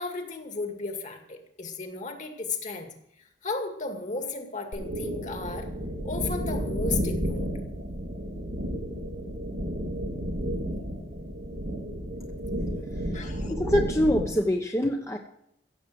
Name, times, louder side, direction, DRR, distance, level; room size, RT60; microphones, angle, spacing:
voice 1, 0.0-2.9 3.4-5.7 6.0-7.5 13.1-13.5, left 3 dB, 45° left, 5 dB, 2.2 m, -34 dB
sound 1, 4.7-14.4, equal, 70° right, 2.5 m, -32 dB
voice 2, 13.5-15.2, left 1 dB, 15° left, 3 dB, 0.9 m, -25 dB
15.5 x 7.4 x 7.7 m, 0.73 s
head